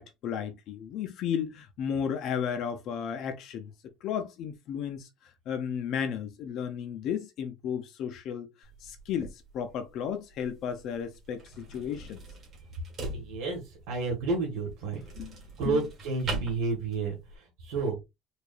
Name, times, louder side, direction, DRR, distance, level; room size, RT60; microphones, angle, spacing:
voice 1, 0.0-3.7 4.0-8.5 8.8-12.2 15.2-15.3 15.7-15.8, left 8 dB, 45° left, 0.6 m, -34 dB
sound 1, 8.6-17.4, right 2 dB, 30° right, 1.7 m, -42 dB
voice 2, 13.1-15.0 15.6-18.0, right 4 dB, 85° right, 1.5 m, -31 dB
4.8 x 2.5 x 2.5 m
cardioid pair, 170°, 0 cm